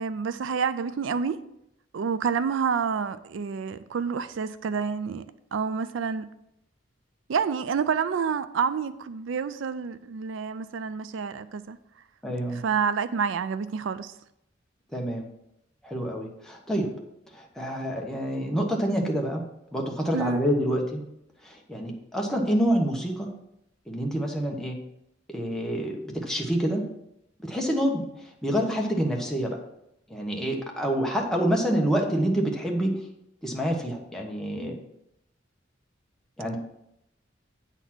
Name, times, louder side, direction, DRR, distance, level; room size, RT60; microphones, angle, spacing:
voice 1, 0.0-1.4 1.9-6.3 7.3-11.8 12.5-14.1 20.1-20.4, right 6 dB, 80° right, 0.4 m, -28 dB
voice 2, 12.2-12.6 14.9-15.3 15.8-16.9 17.3-19.4 19.7-21.0 21.4-23.3 23.9-24.8 25.3-26.8 27.4-28.0 28.4-29.6 30.1-32.9 33.4-34.8 36.4-36.6, equal, 5° left, 1.2 m, -27 dB
8.9 x 4.1 x 6.0 m
head